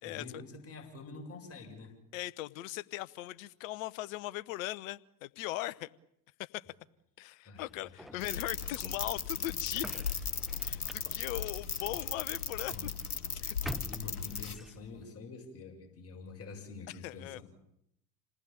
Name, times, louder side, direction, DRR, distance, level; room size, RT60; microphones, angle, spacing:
voice 1, 0.0-1.9 7.5-8.2 8.6-8.7 10.7-10.9 12.7-12.9 13.6-17.4, left 4 dB, 30° left, 3 dB, 7.2 m, -47 dB
voice 2, 2.1-5.9 6.4-6.6 7.2-10.0 10.6-12.9 13.4-13.6 17.0-17.4, left 16 dB, 65° left, 16 dB, 1.1 m, -39 dB
sound 1, 7.6-15.0, equal, ahead, 1.0 m, -49 dB
sound 2, 8.2-14.5, left 6 dB, 85° left, 1.5 m, -37 dB
28.5 x 19.0 x 8.8 m, 0.77 s
figure-of-eight pair, 70°, 44 cm